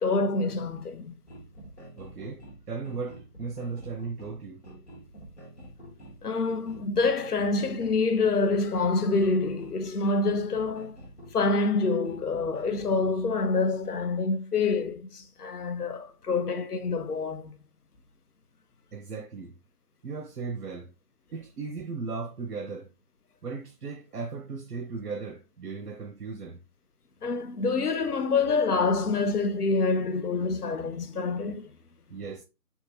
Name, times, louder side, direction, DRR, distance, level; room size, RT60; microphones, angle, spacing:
voice 1, 0.0-1.2 6.2-11.0 11.3-17.5 27.2-31.7, left 3 dB, 75° left, 0.7 m, -26 dB
sound 1, 1.3-13.1, right 1 dB, 45° left, 1.2 m, -48 dB
voice 2, 1.9-4.6 18.9-19.6 20.0-20.9 21.3-22.9 23.4-26.6 32.1-32.4, right 4 dB, 85° right, 0.7 m, -37 dB
3.6 x 2.3 x 2.9 m
figure-of-eight pair, 175°, 46 cm